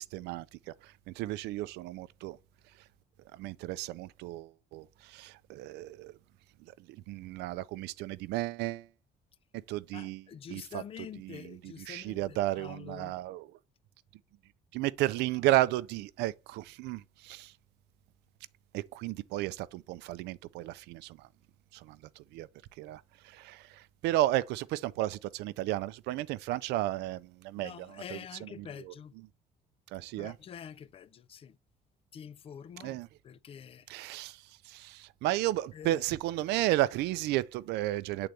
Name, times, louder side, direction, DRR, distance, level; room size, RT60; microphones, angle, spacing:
voice 1, 0.0-2.4 3.3-6.1 6.9-8.9 9.7-10.8 11.2-13.5 14.7-17.5 18.7-21.3 21.7-22.5 22.8-28.9 29.9-30.4 32.8-33.1 33.9-38.3, right 15 dB, 85° right, 0.4 m, -33 dB
voice 2, 9.9-13.1 27.6-29.1 30.2-31.6 32.1-33.0 33.2-33.9 35.7-36.0, left 8 dB, 35° left, 0.4 m, -46 dB
7.6 x 3.9 x 3.3 m
cardioid pair, 110°, 17 cm